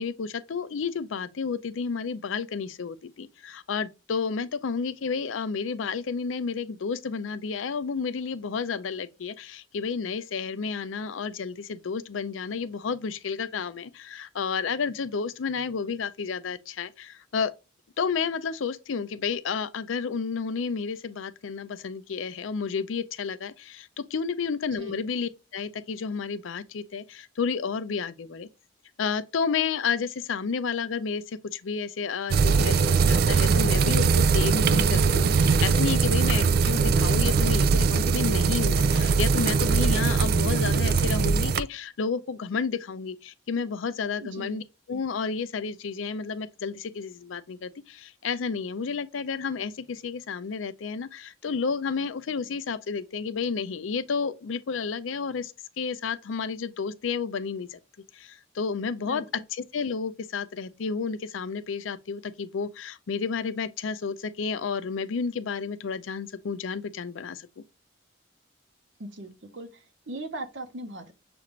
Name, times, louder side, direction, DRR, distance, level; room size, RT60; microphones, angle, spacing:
voice 1, 0.0-17.5 18.0-28.5 29.0-44.6 44.9-57.8 58.1-67.5, left 5 dB, 85° left, 0.5 m, -31 dB
sound 1, 32.3-41.6, right 5 dB, 50° right, 0.3 m, -21 dB
voice 2, 44.2-44.6 59.0-59.2 69.0-71.1, right 1 dB, 70° right, 0.9 m, -39 dB
6.9 x 2.5 x 3.0 m
head